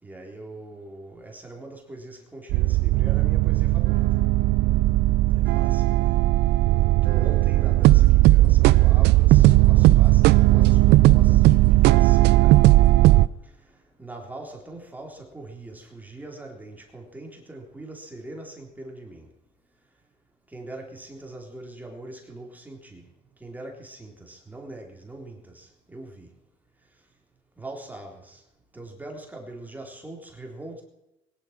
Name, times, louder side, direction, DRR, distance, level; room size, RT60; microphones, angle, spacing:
voice 1, 0.0-4.0 5.3-6.1 7.0-12.7 14.0-19.3 20.5-23.0 23.4-26.3 27.6-28.4 28.7-30.8, right 2 dB, 10° right, 0 dB, 3.8 m, -41 dB
sound 1, 2.5-13.3, right 17 dB, 85° right, 0.5 m, -17 dB
21.0 x 11.5 x 6.0 m, 0.91 s
cardioid pair, 110°, 17 cm